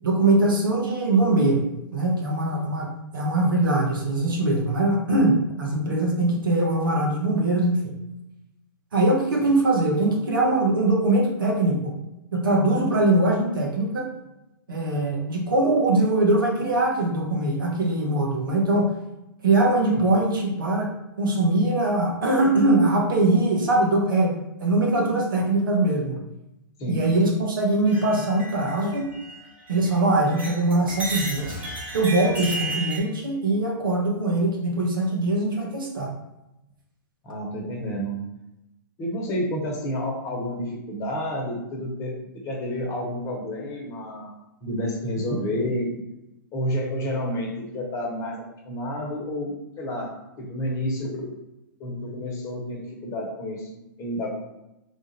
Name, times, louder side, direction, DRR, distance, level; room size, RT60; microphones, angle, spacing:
voice 1, 0.0-1.6 1.9-7.9 8.9-11.9 12.3-14.1 14.7-18.9 19.4-20.9 21.2-26.2 26.9-29.1 29.7-31.6 31.9-36.1, right 2 dB, 75° right, -2 dB, 1.2 m, -22 dB
sound 1, 27.9-30.0 30.3-33.0, right 2 dB, 10° right, 1.1 m, -34 dB
voice 2, 37.2-38.3 39.0-44.3 44.6-46.0 46.5-50.1 50.4-51.4 51.8-54.4, equal, 25° left, -1 dB, 1.0 m, -30 dB
3.5 x 2.5 x 4.1 m, 0.90 s
hypercardioid pair, 120°, 11 cm